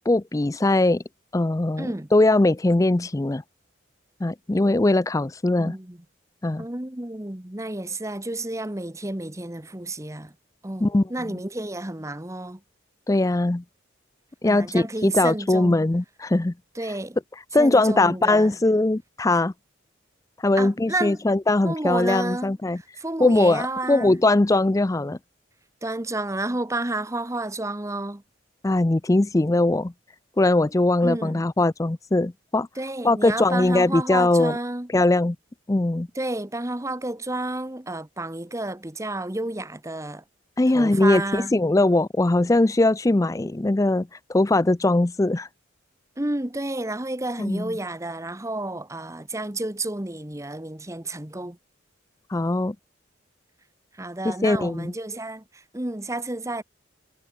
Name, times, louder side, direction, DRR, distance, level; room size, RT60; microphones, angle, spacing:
voice 1, 0.1-1.0 1.3-3.4 4.2-5.7 6.4-6.6 10.8-11.4 13.1-13.6 14.4-16.5 17.5-19.5 20.4-22.8 23.2-23.6 23.9-25.2 28.6-29.9 30.4-32.7 33.0-34.6 34.9-35.4 35.7-36.1 40.6-45.5 47.4-47.7 52.3-52.8 54.2-54.9, left 2 dB, 15° left, 0.4 m, -21 dB
voice 2, 1.8-2.1 5.6-6.0 6.6-10.3 10.6-12.6 14.4-15.8 16.7-17.2 17.6-18.6 20.6-21.2 21.6-24.2 25.8-28.2 31.0-31.4 32.7-34.9 36.1-40.2 40.7-41.6 46.2-51.6 53.9-56.6, right 2 dB, 15° right, 1.1 m, -31 dB
head